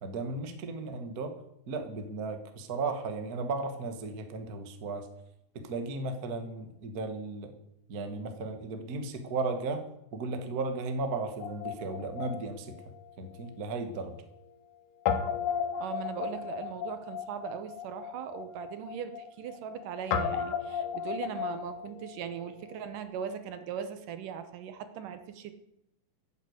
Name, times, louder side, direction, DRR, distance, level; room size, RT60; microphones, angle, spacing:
voice 1, 0.0-1.3 1.7-5.1 5.5-7.5 7.9-9.8 10.1-12.8 13.2-14.1, right 3 dB, 45° right, 7 dB, 1.2 m, -35 dB
Guitar, 11.4-13.8 14.1-14.2 15.1-22.9, left 7 dB, 80° left, 2.9 m, -35 dB
voice 2, 15.8-25.5, right 8 dB, 75° right, 10 dB, 2.6 m, -39 dB
14.0 x 8.1 x 8.0 m, 0.80 s
omnidirectional pair, 3.9 m